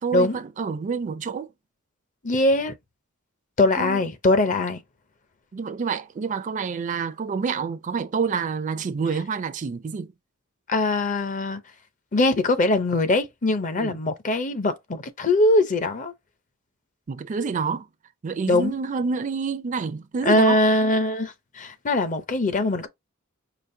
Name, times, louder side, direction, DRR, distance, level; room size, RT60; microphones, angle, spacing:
voice 1, 0.0-1.5 3.8-4.0 5.5-10.1 13.8-14.0 17.1-17.9 18.2-20.6, right 5 dB, 35° right, 0.4 m, -28 dB
voice 2, 2.2-2.7 3.6-4.8 10.7-11.6 12.1-16.1 18.5-18.7 20.2-22.9, left 2 dB, 35° left, 0.6 m, -22 dB
5.0 x 2.4 x 2.6 m
head